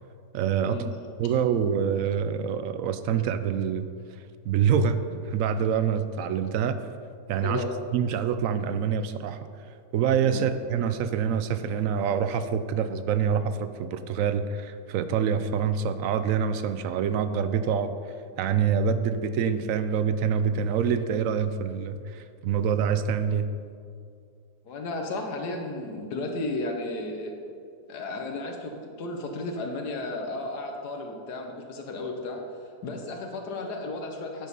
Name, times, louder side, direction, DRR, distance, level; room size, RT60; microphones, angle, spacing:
voice 1, 0.3-0.8 1.2-3.9 4.4-5.0 5.3-6.8 7.3-7.6 7.9-9.4 9.9-17.9 18.4-23.5, right 7 dB, 70° right, 11 dB, 0.8 m, -26 dB
voice 2, 24.6-27.3 27.9-32.4 32.8-34.5, left 2 dB, 85° left, 2 dB, 1.6 m, -33 dB
9.1 x 6.5 x 5.3 m, 2.3 s
omnidirectional pair, 1.7 m